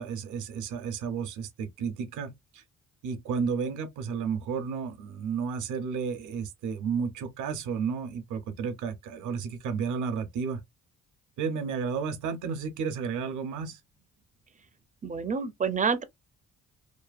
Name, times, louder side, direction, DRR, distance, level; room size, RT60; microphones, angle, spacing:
voice 1, 0.0-2.6 3.0-10.6 11.4-13.8, right 6 dB, 80° right, 0.7 m, -32 dB
voice 2, 15.0-16.0, right 5 dB, 25° right, 0.4 m, -28 dB
2.7 x 2.2 x 2.3 m
cardioid pair, 90°, 30 cm